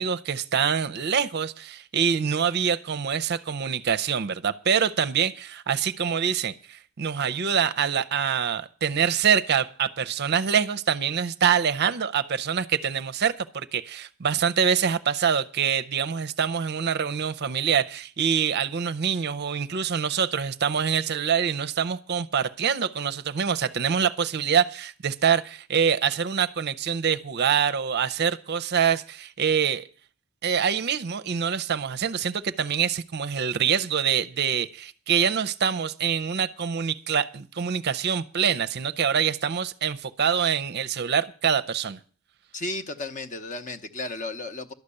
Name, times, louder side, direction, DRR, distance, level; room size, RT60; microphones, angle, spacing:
voice 1, 0.0-29.9 30.4-42.0, right 7 dB, 50° right, 0.5 m, -25 dB
voice 2, 42.5-44.7, left 2 dB, 35° left, 0.9 m, -34 dB
12.0 x 6.6 x 9.7 m
head